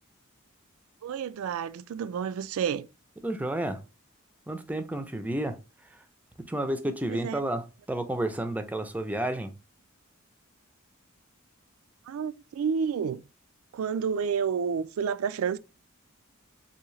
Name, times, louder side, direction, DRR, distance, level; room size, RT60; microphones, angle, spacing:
voice 1, 1.0-2.9 7.1-7.4 12.1-13.2 13.7-15.6, right 7 dB, 80° right, 0.3 m, -30 dB
voice 2, 3.2-3.8 4.5-5.6 5.9-6.0 6.5-9.5, right 1 dB, 5° right, 0.4 m, -31 dB
3.6 x 2.7 x 3.1 m
head